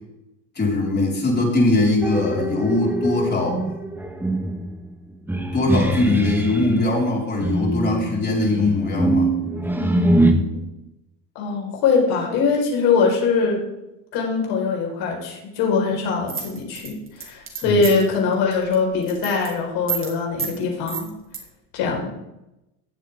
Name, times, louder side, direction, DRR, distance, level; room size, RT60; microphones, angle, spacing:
voice 1, 0.5-3.6 5.5-9.3 17.6-17.8, left 2 dB, 25° left, -3 dB, 4.7 m, -21 dB
sound 1, 2.0-6.7 7.4-10.3, right 1 dB, 5° right, 1.5 m, -23 dB
voice 2, 9.8-10.6 11.3-13.6 14.1-21.1 21.7-22.1, left 4 dB, 70° left, -1 dB, 4.7 m, -22 dB
sound 2, 16.3-18.1 18.5-18.7 19.0-19.5 19.9-20.1 20.4-20.5 20.9-21.4, right 7 dB, 30° right, 3.2 m, -29 dB
16.0 x 7.6 x 3.6 m, 0.91 s
supercardioid pair, 95°, 39 cm